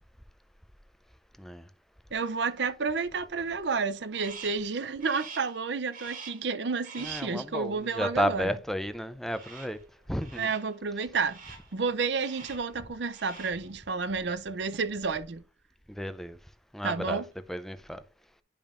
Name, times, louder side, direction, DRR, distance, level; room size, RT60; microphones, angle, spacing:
voice 1, 2.1-8.5 10.4-11.4 11.7-15.4 16.8-17.3, right 4 dB, 80° right, 0.6 m, -31 dB
Crow, 4.1-4.7 5.0-5.6 5.9-6.5 6.8-7.4 9.3-9.8 10.2-10.7 11.2-11.7 12.2-12.7 13.0-13.7, right 5 dB, 50° right, 1.9 m, -46 dB
voice 2, 7.0-9.8 10.1-10.5 15.9-16.4 16.7-17.2 17.5-18.0, equal, ahead, 0.5 m, -32 dB
10.5 x 5.3 x 2.5 m
head